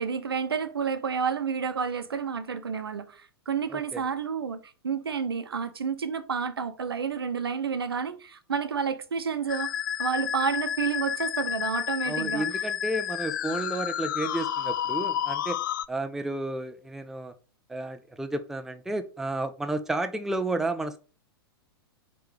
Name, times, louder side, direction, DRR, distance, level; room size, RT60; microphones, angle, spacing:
voice 1, 0.0-9.7 10.0-12.5, right 6 dB, 75° right, 0.8 m, -30 dB
voice 2, 3.7-4.0 12.0-15.6 15.9-17.3 17.7-21.0, right 2 dB, 5° right, 0.5 m, -32 dB
Musical instrument, 9.5-15.9, left 10 dB, 55° left, 0.4 m, -30 dB
4.7 x 4.6 x 5.1 m
figure-of-eight pair, 105°, 13 cm